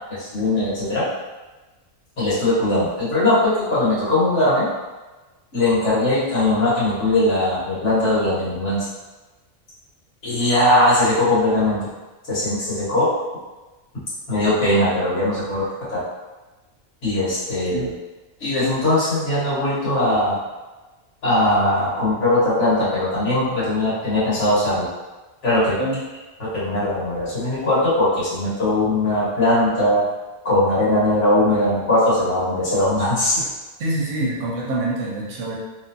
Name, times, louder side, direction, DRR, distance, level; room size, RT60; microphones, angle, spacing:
voice 1, 0.2-1.0 2.2-4.7 5.5-8.8 10.2-11.8 12.3-13.1 14.3-16.0 17.0-17.9 18.4-20.4 21.2-24.9 25.4-25.8 26.4-30.0 30.4-33.5, left 1 dB, 70° left, -10 dB, 1.7 m, -20 dB
voice 2, 33.8-35.6, right 2 dB, 80° right, -3 dB, 1.1 m, -25 dB
3.2 x 2.7 x 2.7 m, 1.2 s
omnidirectional pair, 1.3 m